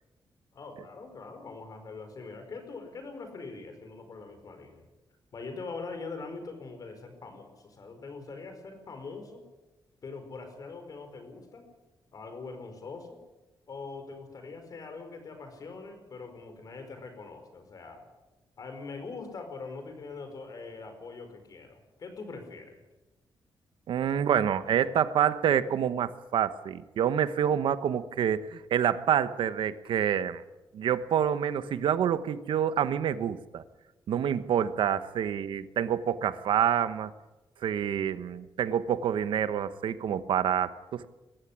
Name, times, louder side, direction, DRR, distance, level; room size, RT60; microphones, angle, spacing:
voice 1, 0.5-4.8 5.3-9.4 10.0-11.7 12.1-13.2 13.7-18.0 18.6-22.8, left 4 dB, 45° left, 7 dB, 5.0 m, -42 dB
voice 2, 23.9-30.4 30.7-33.6 34.1-37.1 37.6-41.0, right 9 dB, 85° right, 13 dB, 1.1 m, -27 dB
22.5 x 15.0 x 10.0 m, 1.1 s
wide cardioid pair, 150°, 8 cm